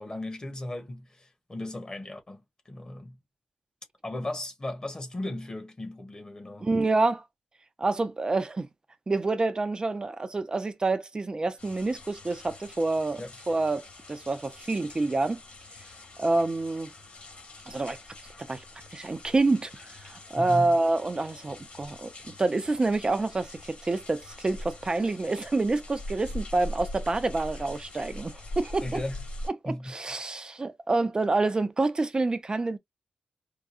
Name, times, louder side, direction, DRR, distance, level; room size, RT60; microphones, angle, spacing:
voice 1, 0.0-3.2 4.0-6.7 13.2-13.3 20.4-20.8 28.8-29.2 29.6-30.1, left 1 dB, 25° left, 1.3 m, -36 dB
voice 2, 6.6-7.2 7.8-8.7 9.1-13.2 13.5-15.4 16.2-16.9 17.7-18.0 18.5-18.6 18.9-29.0 29.6-32.8, right 3 dB, 30° right, 0.6 m, -27 dB
sound 1, 11.6-29.5, left 1 dB, 50° left, 2.2 m, -43 dB
4.8 x 2.3 x 2.6 m
wide cardioid pair, 115°, 3 cm